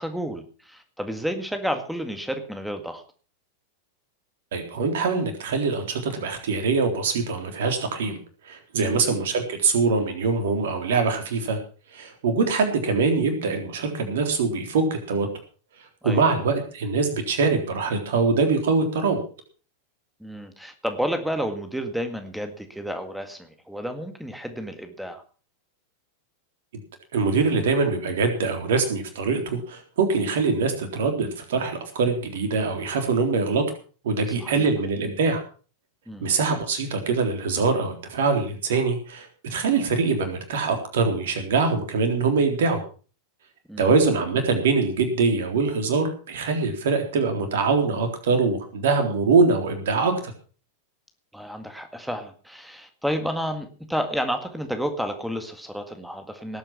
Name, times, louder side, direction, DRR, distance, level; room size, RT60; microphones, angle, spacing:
voice 1, 0.0-3.0 8.8-9.0 16.0-16.2 20.2-25.2 34.4-34.7 36.1-36.3 43.7-43.9 51.3-56.6, equal, ahead, 7 dB, 1.9 m, -31 dB
voice 2, 4.5-8.2 8.4-11.6 11.9-15.3 16.0-19.2 27.1-33.6 34.0-35.4 36.2-42.8 43.8-50.3, right 4 dB, 60° right, 5 dB, 3.8 m, -23 dB
18.5 x 8.9 x 5.9 m, 0.39 s
figure-of-eight pair, 90°, 0 cm